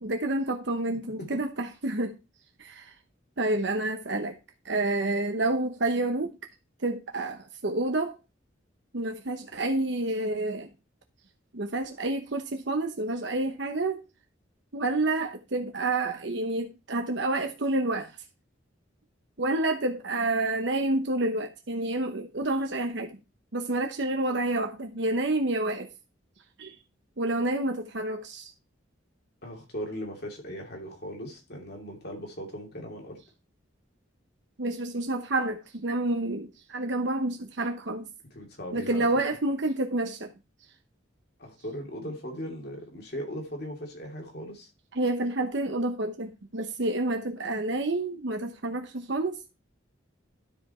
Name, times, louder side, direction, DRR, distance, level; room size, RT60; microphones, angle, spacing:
voice 1, 0.0-2.2 2.6-2.9 3.4-4.4 4.6-6.4 6.8-8.1 8.9-10.7 11.5-14.0 14.7-18.1 19.4-23.2 23.5-25.9 26.6-26.8 27.2-28.5 34.6-38.1 38.7-40.3 44.9-49.5, right 2 dB, 60° right, 0.9 m, -29 dB
voice 2, 29.4-33.2 38.3-39.1 41.4-44.7, equal, 55° left, 2.8 m, -38 dB
12.0 x 5.1 x 4.4 m
head